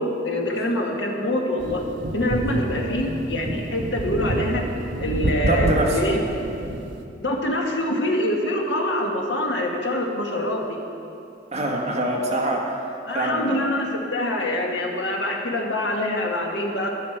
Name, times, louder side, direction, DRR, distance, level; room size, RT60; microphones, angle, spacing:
voice 1, 0.0-1.8 2.1-4.6 5.0-6.2 7.2-10.8 13.1-16.9, left 1 dB, 70° left, 1 dB, 1.4 m, -25 dB
sound 1, 1.6-7.1, right 1 dB, 75° right, 0.8 m, -28 dB
voice 2, 5.2-6.0 11.5-13.7, right 1 dB, 35° right, -1 dB, 1.3 m, -25 dB
11.5 x 11.0 x 4.4 m, 2.7 s
head